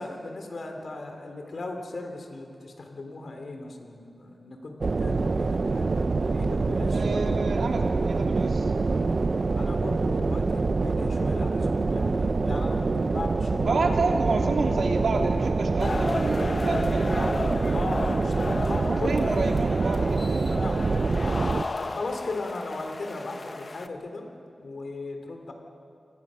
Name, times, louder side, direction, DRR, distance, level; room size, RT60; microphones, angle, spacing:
voice 1, 0.0-7.5 8.9-14.2 15.1-15.3 17.7-19.5 20.6-20.9 21.2-21.5 21.7-24.3 24.6-25.5, left 2 dB, 65° left, 4 dB, 3.2 m, -37 dB
sound 1, 4.8-21.6, right 3 dB, 50° right, 0.6 m, -25 dB
voice 2, 6.9-8.7 13.7-17.4 19.0-20.6, right 3 dB, 90° right, 1 dB, 2.8 m, -29 dB
sound 2, 15.8-23.9, left 3 dB, 40° left, 1.0 m, -34 dB
28.5 x 20.5 x 6.4 m, 2.5 s
wide cardioid pair, 125°, 0 cm